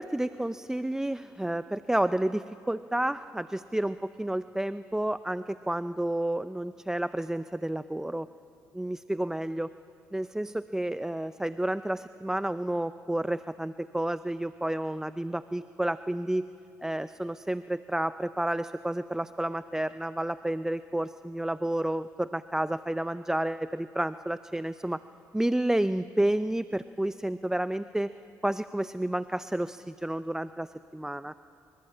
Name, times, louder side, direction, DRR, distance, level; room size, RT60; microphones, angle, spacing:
voice 1, 0.0-8.3 8.7-9.7 10.1-16.5 16.8-25.0 25.3-28.1 28.4-31.3, right 1 dB, 5° right, 13 dB, 0.5 m, -30 dB
25.5 x 24.5 x 8.7 m, 2.7 s
supercardioid pair, 70°, 8 cm